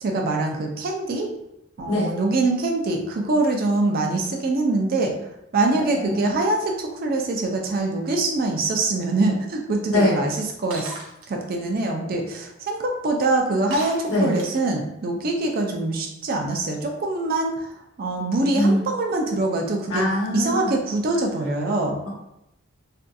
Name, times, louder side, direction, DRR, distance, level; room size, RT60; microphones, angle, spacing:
voice 1, 0.0-1.3 1.8-5.1 5.5-10.9 11.3-17.7 18.0-20.0 20.3-22.0, right 2 dB, 45° right, 2 dB, 0.4 m, -24 dB
voice 2, 5.7-6.4 9.9-10.2 14.1-14.3 18.5-18.8 19.9-20.7 22.0-22.1, left 1 dB, 80° left, -5 dB, 1.0 m, -23 dB
Shatter, 10.7-11.3 13.7-14.7, right 2 dB, 90° right, 0.6 m, -36 dB
2.6 x 2.4 x 2.2 m, 0.85 s
head